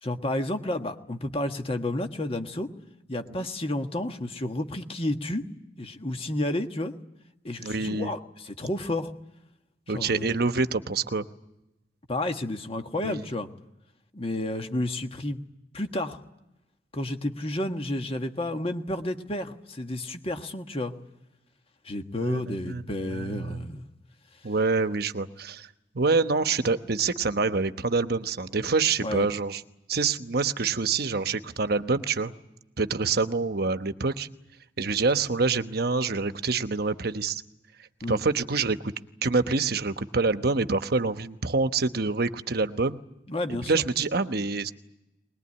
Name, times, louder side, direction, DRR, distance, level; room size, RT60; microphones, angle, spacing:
voice 1, 0.0-2.7 3.1-5.5 5.8-6.9 7.4-9.1 9.9-10.3 12.1-13.5 14.1-15.4 15.7-16.2 16.9-20.9 21.8-23.8 29.0-29.3 38.0-38.2 43.3-43.7, left 1 dB, 30° left, 6 dB, 1.5 m, -31 dB
voice 2, 7.6-8.1 9.9-11.3 13.0-13.2 22.2-22.8 23.1-23.7 24.4-25.7 25.9-29.6 29.9-32.3 32.8-34.3 34.8-37.4 38.1-38.9 39.2-43.0 43.7-44.7, right 4 dB, 60° right, 10 dB, 1.0 m, -26 dB
21.5 x 21.0 x 9.7 m, 0.93 s
head